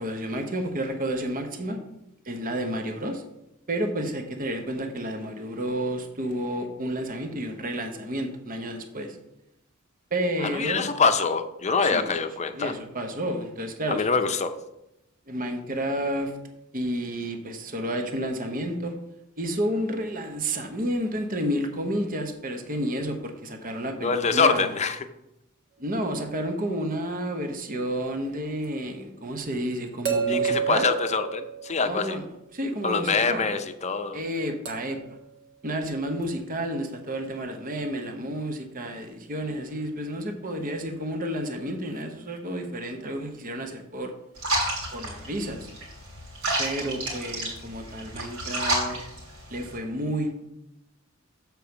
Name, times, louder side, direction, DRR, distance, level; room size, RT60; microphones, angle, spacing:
voice 1, 0.0-1.8 2.3-3.2 3.7-9.2 10.1-10.8 11.8-12.1 12.5-14.0 15.3-16.3 16.7-18.9 19.4-24.7 25.8-30.9 31.8-32.2 32.5-33.5 34.1-35.2 35.6-44.1 44.9-45.7 46.6-49.0 49.5-50.3, right 1 dB, 40° right, 5 dB, 1.0 m, -30 dB
voice 2, 10.4-12.7 13.9-14.5 24.0-25.1 30.3-32.2 32.8-34.2, left 5 dB, 35° left, 9 dB, 0.6 m, -25 dB
sound 1, 28.6-28.7 30.0-32.1 34.6-35.1 36.2-36.3, right 7 dB, 60° right, 1.6 m, -29 dB
sound 2, 44.4-49.8, right 1 dB, 90° right, 3.3 m, -30 dB
7.0 x 4.6 x 6.9 m, 0.86 s
head